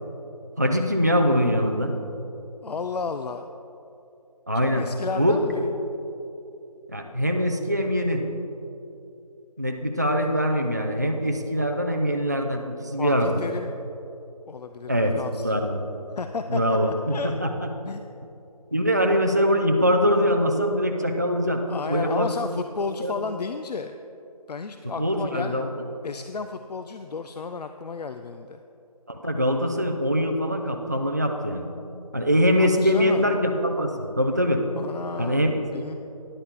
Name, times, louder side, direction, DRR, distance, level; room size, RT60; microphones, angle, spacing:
voice 1, 0.6-1.9 4.5-4.9 5.1-5.5 6.9-8.2 9.6-13.4 14.9-15.9 16.5-17.5 18.7-22.3 23.0-23.2 25.0-25.7 29.1-31.7 32.1-34.6 35.2-35.6, equal, 30° right, 3 dB, 0.3 m, -23 dB
voice 2, 2.6-3.5 4.7-5.7 13.0-13.7 14.5-15.5 16.2-16.8 17.1-17.3 17.9-18.1 21.7-24.0 24.5-25.6 26.0-28.6 32.6-33.3 34.8-35.9, left 5 dB, 90° left, 8 dB, 0.4 m, -32 dB
10.0 x 8.2 x 3.6 m, 2.8 s
figure-of-eight pair, 170°, 20 cm